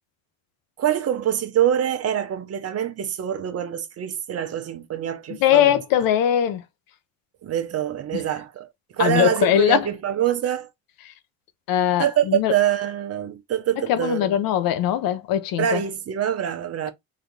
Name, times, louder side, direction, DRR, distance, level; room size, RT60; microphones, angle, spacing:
voice 1, 0.8-5.8 7.4-8.7 8.9-10.7 12.0-14.3 15.6-16.9, right 10 dB, 40° right, 1.0 m, -25 dB
voice 2, 5.4-6.6 9.0-9.8 11.7-12.5 13.9-15.8, left 10 dB, 60° left, 1.0 m, -20 dB
4.2 x 2.8 x 4.0 m
supercardioid pair, 100°, 38 cm